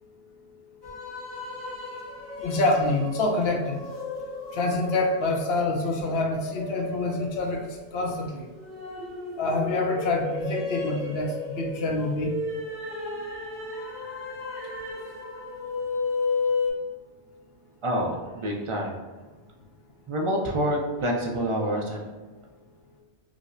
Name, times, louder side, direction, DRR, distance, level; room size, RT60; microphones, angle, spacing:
sound 1, 0.8-16.7, left 3 dB, 75° right, 1.7 m, -33 dB
voice 1, 2.4-3.8 4.5-8.5 9.4-12.3, left 2 dB, 65° left, 2 dB, 0.8 m, -26 dB
voice 2, 17.8-19.0 20.1-22.0, equal, 50° right, -1 dB, 0.3 m, -27 dB
4.7 x 2.1 x 2.5 m, 1.3 s
omnidirectional pair, 1.1 m